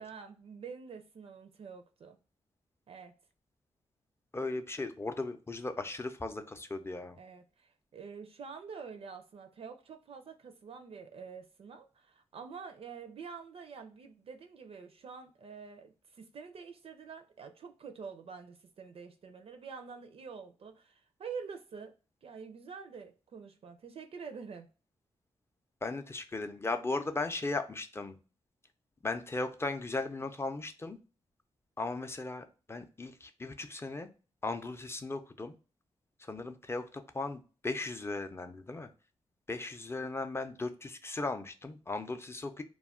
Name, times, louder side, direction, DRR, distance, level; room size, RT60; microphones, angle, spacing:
voice 1, 0.0-2.2 2.9-3.1 7.2-21.9 22.2-24.7, right 5 dB, 55° right, 0.4 m, -47 dB
voice 2, 4.3-7.2 25.8-28.2 29.0-31.0 31.8-34.1 34.4-35.5 36.2-38.9 39.5-42.6, left 3 dB, 20° left, 0.5 m, -37 dB
2.3 x 2.1 x 3.5 m
cardioid pair, 60°, 12 cm